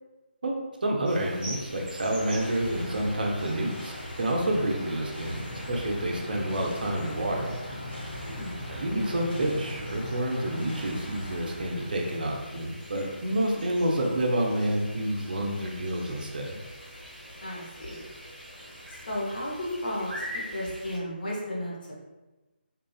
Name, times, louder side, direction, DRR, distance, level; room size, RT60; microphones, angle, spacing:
voice 1, 0.8-3.9 4.2-5.4 5.7-7.5 8.7-16.6, right 1 dB, 55° right, 0 dB, 0.5 m, -28 dB
sound 1, 1.0-21.0, equal, 5° right, 1.1 m, -44 dB
sound 2, 1.7-12.5, equal, 85° left, 1.0 m, -42 dB
sound 3, 5.2-10.2, left 1 dB, 25° left, 0.5 m, -40 dB
voice 2, 8.2-8.6 17.4-18.0 19.1-21.9, left 1 dB, 50° left, -5 dB, 0.9 m, -34 dB
2.9 x 2.3 x 2.3 m, 1.1 s
figure-of-eight pair, 150°, 6 cm